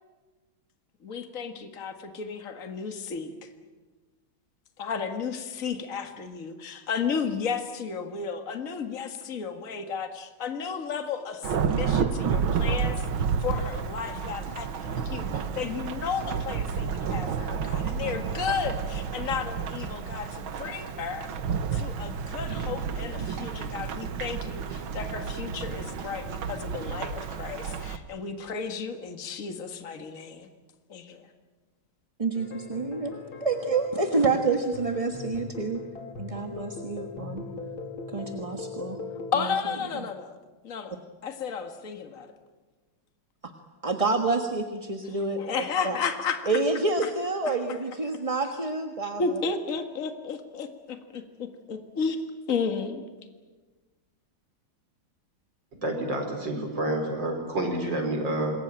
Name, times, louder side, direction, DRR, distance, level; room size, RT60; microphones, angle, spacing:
voice 1, 1.0-3.5 4.8-21.3 21.7-30.5 30.9-31.3 39.3-40.4 40.6-41.0 41.2-42.3 45.4-46.6 47.5-47.6 49.2-52.2 52.5-53.0, left 5 dB, 40° left, 7 dB, 2.1 m, -33 dB
Thunderstorm / Rain, 11.4-28.0, right 6 dB, 75° right, 2.0 m, -31 dB
voice 2, 32.2-33.1 33.4-35.8 36.2-37.4 38.1-39.0 39.9-40.0 43.4-43.5 43.8-45.4 45.8-46.0 46.5-49.2, right 3 dB, 20° right, 4 dB, 1.2 m, -28 dB
sound 1, 32.3-39.3, left 3 dB, 70° left, 3.4 m, -40 dB
voice 3, 55.8-58.6, right 1 dB, 60° right, 4 dB, 5.3 m, -28 dB
27.0 x 21.5 x 9.0 m, 1.3 s
omnidirectional pair, 2.3 m